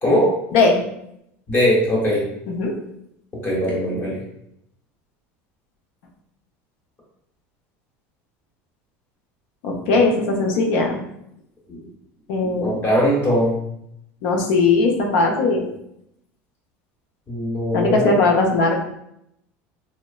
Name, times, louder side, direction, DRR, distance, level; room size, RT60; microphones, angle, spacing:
voice 1, 0.0-0.3 1.5-2.2 3.4-4.2 11.7-11.8 12.4-13.6 17.3-18.1, equal, 30° left, -5 dB, 0.9 m, -20 dB
voice 2, 9.6-11.0 12.3-12.8 14.2-15.6 17.7-18.8, left 3 dB, 70° left, 1 dB, 0.5 m, -19 dB
3.1 x 2.0 x 2.3 m, 0.77 s
supercardioid pair, 145°, 6 cm